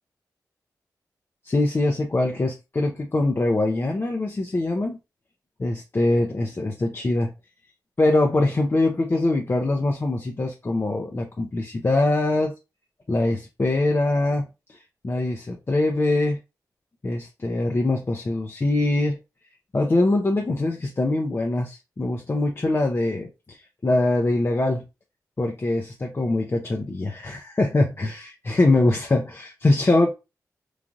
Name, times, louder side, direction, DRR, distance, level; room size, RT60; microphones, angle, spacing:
voice 1, 1.4-5.0 5.6-7.3 8.0-12.5 13.1-16.4 17.0-19.2 19.7-24.8 25.4-30.1, left 2 dB, 35° left, 0.5 m, -23 dB
3.1 x 2.4 x 2.4 m
cardioid pair, 50°, 7 cm